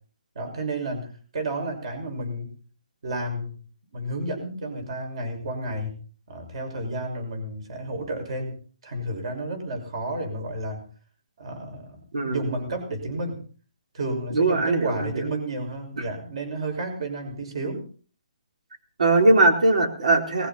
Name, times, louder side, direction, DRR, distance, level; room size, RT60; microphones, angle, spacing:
voice 1, 0.3-2.6 3.0-3.6 3.9-6.0 6.3-8.6 8.8-10.8 11.4-13.4 13.9-17.8, right 1 dB, 45° right, 5 dB, 6.1 m, -31 dB
voice 2, 14.3-15.2 19.0-20.5, right 2 dB, 75° right, 4 dB, 4.2 m, -20 dB
20.0 x 14.5 x 4.3 m, 0.43 s
hypercardioid pair, 175°, 4 cm